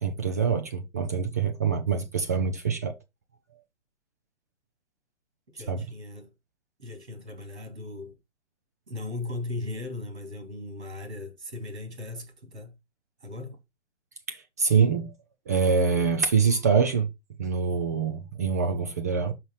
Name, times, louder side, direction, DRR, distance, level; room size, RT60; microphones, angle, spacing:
voice 1, 0.0-3.0 5.7-5.9 14.3-15.1 15.5-17.1 17.4-19.3, right 5 dB, 15° right, 0.3 m, -25 dB
voice 2, 5.5-6.3 6.8-8.1 8.9-12.7 13.2-13.6, left 2 dB, 75° right, 3.3 m, -37 dB
5.8 x 5.3 x 4.6 m
figure-of-eight pair, 120°, 34 cm